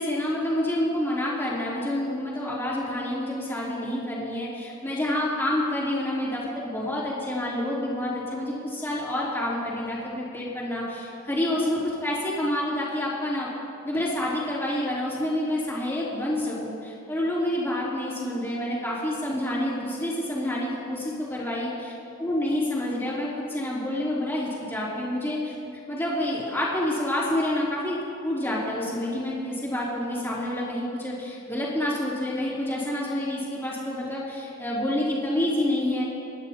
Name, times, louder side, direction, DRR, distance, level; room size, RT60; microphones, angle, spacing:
voice 1, 0.0-13.5 13.8-25.5 25.9-36.0, left 1 dB, 10° left, -7 dB, 3.2 m, -28 dB
25.0 x 11.5 x 2.9 m, 2.6 s
head